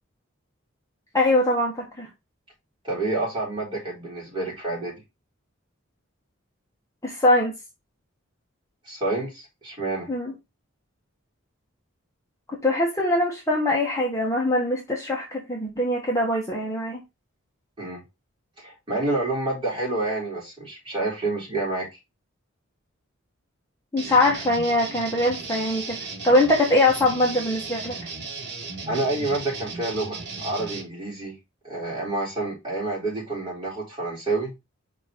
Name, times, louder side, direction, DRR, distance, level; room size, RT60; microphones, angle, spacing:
voice 1, 1.1-2.1 7.0-7.5 10.1-10.3 12.5-17.0 23.9-26.0 26.2-28.0, left 1 dB, 15° left, 1.3 m, -22 dB
voice 2, 2.8-5.0 8.8-10.1 17.8-18.0 18.6-21.9 28.9-31.4 31.6-34.5, right 2 dB, 25° right, 4.2 m, -28 dB
sound 1, 24.0-30.8, right 4 dB, 55° right, 1.6 m, -36 dB
5.4 x 4.4 x 5.1 m
head